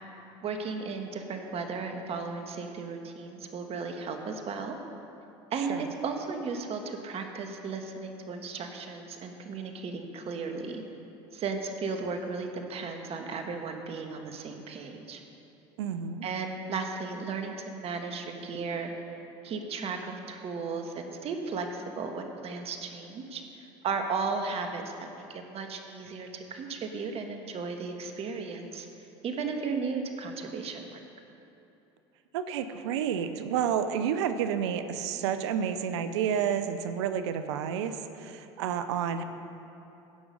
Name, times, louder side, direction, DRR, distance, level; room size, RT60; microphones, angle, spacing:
voice 1, 0.4-4.8 5.5-10.8 11.3-15.2 16.2-18.9 19.4-20.0 20.3-23.4 23.8-28.9 29.2-31.0, right 4 dB, 45° right, 4 dB, 1.4 m, -35 dB
voice 2, 15.8-16.3 32.3-39.2, right 8 dB, 80° right, 10 dB, 0.7 m, -30 dB
16.5 x 6.2 x 5.4 m, 3.0 s
hypercardioid pair, 85°, 14 cm